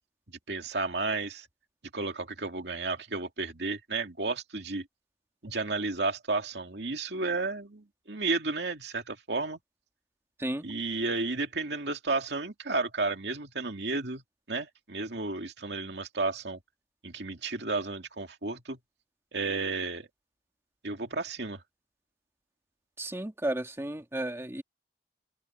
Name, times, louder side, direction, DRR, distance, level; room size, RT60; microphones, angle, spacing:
voice 1, 0.3-1.5 1.9-4.9 5.4-9.6 10.6-14.2 14.5-16.6 17.0-18.8 19.3-20.1 20.8-21.6, right 3 dB, 70° right, 2.6 m, -32 dB
voice 2, 23.0-24.6, right 1 dB, 15° right, 1.8 m, -33 dB
open air
head